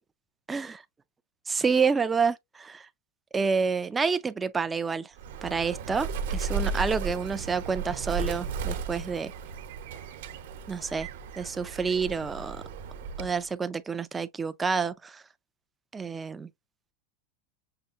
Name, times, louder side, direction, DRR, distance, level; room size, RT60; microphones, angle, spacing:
voice 1, 1.5-2.9 3.3-5.1 5.4-9.3 10.7-11.1 11.4-12.6 13.2-15.2 15.9-16.5, right 5 dB, 10° right, 0.3 m, -28 dB
Bird, 5.2-13.4, right 5 dB, 60° right, 0.9 m, -35 dB
6.6 x 2.5 x 2.5 m
supercardioid pair, 180°, 0 cm